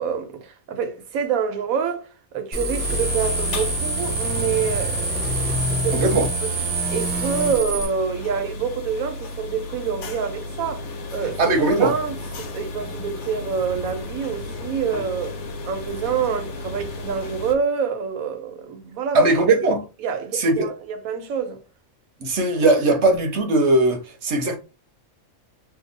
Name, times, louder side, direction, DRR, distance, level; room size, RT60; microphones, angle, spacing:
voice 1, 0.0-5.4 5.7-6.1 6.4-6.5 6.9-11.5 11.8-15.4 15.6-19.3 20.0-21.6, right 6 dB, 85° right, 1.2 m, -27 dB
sound 1, 2.5-7.8, right 2 dB, 35° right, 0.7 m, -25 dB
sound 2, 2.8-17.6, left 2 dB, 85° left, 1.2 m, -34 dB
voice 2, 5.9-6.3 11.4-11.9 19.1-19.8 20.3-20.7 22.2-24.6, right 2 dB, 60° right, 1.0 m, -19 dB
2.9 x 2.3 x 3.8 m
omnidirectional pair, 1.4 m